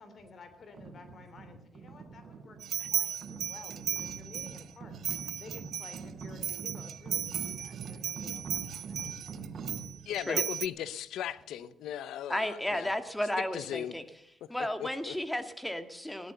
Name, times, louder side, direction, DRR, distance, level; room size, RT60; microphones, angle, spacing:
voice 1, 0.0-9.2 9.5-9.8 10.3-10.4, left 4 dB, 50° left, 2.9 m, -53 dB
sound 1, 0.7-10.2, right 5 dB, 50° right, 3.8 m, -44 dB
sound 2, 2.6-4.6 5.0-10.7, right 9 dB, 65° right, 0.5 m, -35 dB
voice 2, 10.1-12.9 13.5-13.9 14.8-15.1, left 10 dB, 85° left, 0.8 m, -37 dB
voice 3, 12.3-14.0 14.5-16.3, left 1 dB, 5° left, 1.8 m, -33 dB
16.0 x 11.5 x 6.8 m
cardioid pair, 90°, 0 cm